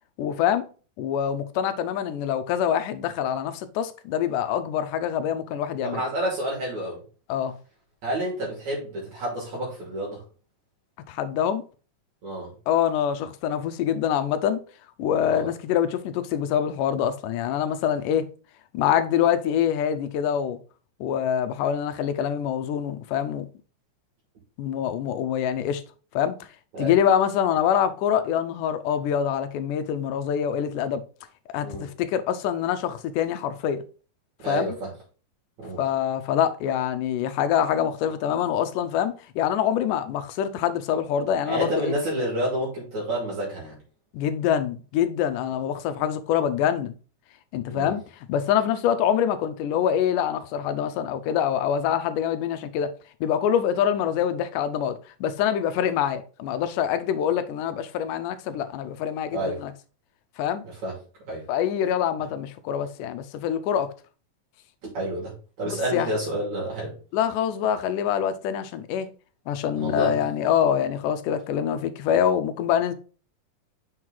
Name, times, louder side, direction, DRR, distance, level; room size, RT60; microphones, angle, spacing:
voice 1, 0.2-0.7 1.0-6.0 7.3-7.6 11.1-11.6 12.7-14.6 15.0-18.3 18.7-20.6 21.0-23.5 24.6-25.8 26.1-26.4 26.8-31.0 31.5-33.8 34.4-34.7 35.8-41.9 44.1-46.9 47.5-48.0 48.3-52.9 53.2-59.7 60.4-60.6 61.5-63.9 65.7-66.1 67.1-69.1 69.5-72.9, left 9 dB, 80° left, 2.2 m, -25 dB
voice 2, 5.8-7.0 8.0-10.2 12.2-12.5 15.2-15.5 26.7-27.0 31.6-31.9 34.4-34.9 35.6-35.8 41.4-43.8 47.7-48.0 59.3-59.6 60.6-61.0 61.3-61.5 64.9-66.9 69.8-70.2, right 1 dB, 60° right, 3.8 m, -29 dB
6.5 x 4.6 x 3.8 m
omnidirectional pair, 3.8 m